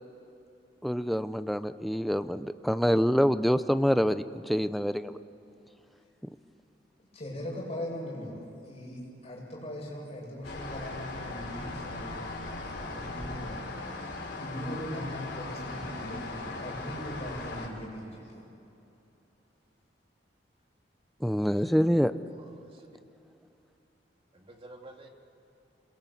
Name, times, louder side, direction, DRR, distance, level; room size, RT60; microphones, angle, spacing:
voice 1, 0.8-5.2 21.2-22.1, equal, ahead, 11 dB, 0.6 m, -26 dB
voice 2, 7.0-13.6 14.4-18.4, equal, 35° left, -2 dB, 7.5 m, -40 dB
sound 1, 10.4-17.7, left 2 dB, 65° left, 3.8 m, -38 dB
voice 3, 21.4-21.7 22.3-23.0 24.3-25.1, right 2 dB, 30° right, 2 dB, 2.3 m, -51 dB
28.0 x 22.0 x 8.4 m, 2.8 s
head